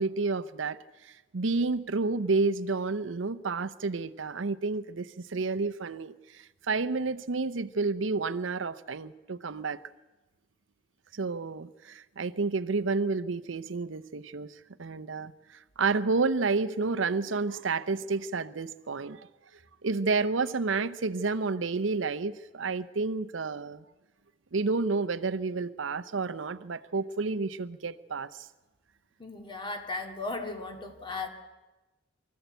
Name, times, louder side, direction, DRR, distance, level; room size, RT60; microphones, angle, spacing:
voice 1, 0.0-9.8 11.1-14.5 14.8-19.3 19.8-23.8 24.5-28.5, right 4 dB, 85° right, 13 dB, 0.7 m, -30 dB
voice 2, 29.2-31.3, left 3 dB, 25° left, 4 dB, 2.3 m, -36 dB
24.5 x 14.0 x 8.1 m, 1.1 s
head